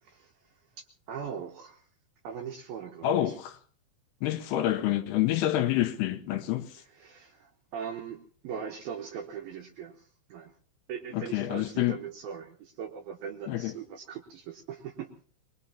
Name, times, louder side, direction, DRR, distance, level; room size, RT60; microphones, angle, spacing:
voice 1, 0.0-0.3 0.8-1.8 2.2-3.4 7.0-10.5 10.9-15.1, right 7 dB, 70° right, 2.3 m, -40 dB
voice 2, 3.0-3.6 4.2-6.8 11.1-12.0 13.5-13.7, left 13 dB, 75° left, 2.4 m, -28 dB
24.0 x 20.5 x 2.8 m
omnidirectional pair, 5.6 m